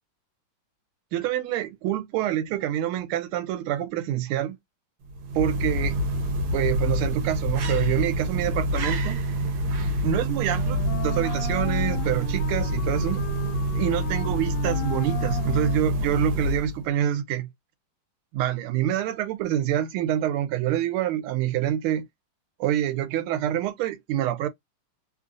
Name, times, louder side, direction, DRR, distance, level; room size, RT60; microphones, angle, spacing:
voice 1, 1.1-4.6 5.3-6.0 6.5-9.2 10.0-13.2 13.8-17.5 18.3-22.0 22.6-24.5, right 11 dB, 85° right, 1.5 m, -26 dB
sound 1, 5.1-16.9, equal, 70° right, 1.5 m, -26 dB
Wind instrument woodwind instrument, 10.5-16.4, left 12 dB, 80° left, 1.4 m, -37 dB
3.4 x 2.5 x 2.5 m
omnidirectional pair, 2.3 m